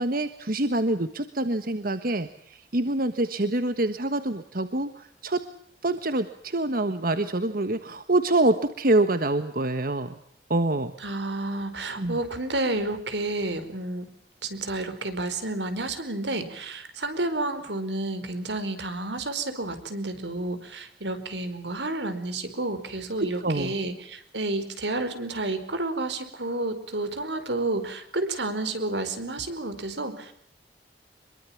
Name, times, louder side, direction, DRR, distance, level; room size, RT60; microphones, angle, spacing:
voice 1, 0.0-5.4 5.8-10.2 10.5-10.9 12.0-12.2 23.2-23.7, right 2 dB, 55° right, 10 dB, 1.4 m, -26 dB
voice 2, 11.0-14.1 14.4-30.3, right 2 dB, 85° right, 10 dB, 4.7 m, -30 dB
25.5 x 23.0 x 7.2 m, 0.67 s
head